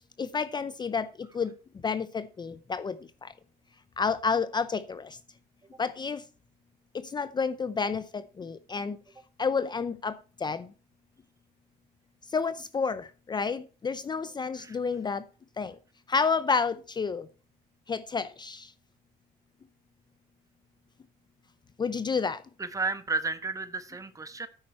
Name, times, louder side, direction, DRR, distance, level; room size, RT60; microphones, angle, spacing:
voice 1, 0.2-1.5 1.8-3.3 4.0-5.2 5.8-6.2 6.9-9.0 9.4-10.7 12.3-15.2 15.6-15.8 16.1-17.3 17.9-18.7 21.8-22.4, left 5 dB, 25° left, 14 dB, 0.6 m, -30 dB
voice 2, 22.6-24.5, right 3 dB, 20° right, 12 dB, 1.1 m, -32 dB
9.7 x 8.6 x 4.4 m, 0.36 s
cardioid pair, 110°, 17 cm